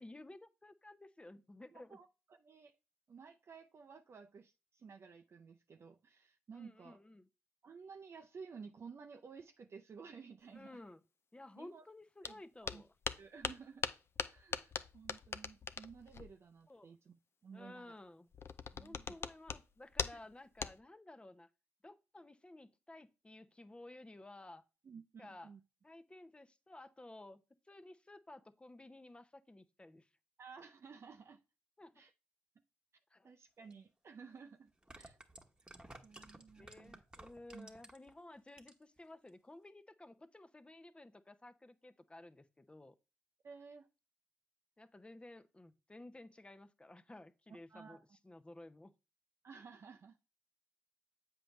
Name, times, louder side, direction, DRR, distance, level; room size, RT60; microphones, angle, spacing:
voice 1, 0.0-2.0 6.5-7.3 10.5-11.0 11.3-12.9 16.7-16.9 17.5-18.3 18.8-21.5 21.8-24.6 25.2-25.5 25.8-27.4 27.7-30.1 31.8-32.0 33.1-33.3 35.8-36.0 36.6-43.0 44.8-48.9, left 2 dB, 20° left, 0.7 m, -55 dB
voice 2, 1.7-2.8 3.1-7.0 7.6-10.8 11.6-11.8 12.2-12.8 13.2-13.9 14.3-17.9 18.7-19.2 24.8-25.6 30.4-31.4 32.0-32.1 33.2-35.2 36.0-37.0 37.5-37.8 43.4-43.9 47.7-48.0 49.4-50.2, right 5 dB, 50° right, 0.5 m, -54 dB
sound 1, 12.2-12.3 12.6-16.3 18.3-19.6 19.9-20.3 20.6-20.8, left 5 dB, 50° left, 0.5 m, -40 dB
sound 2, 33.7-33.8 34.7-38.1 38.5-39.0 39.3-39.4, right 2 dB, 15° right, 1.2 m, -55 dB
7.6 x 5.2 x 3.1 m
supercardioid pair, 45°, 6 cm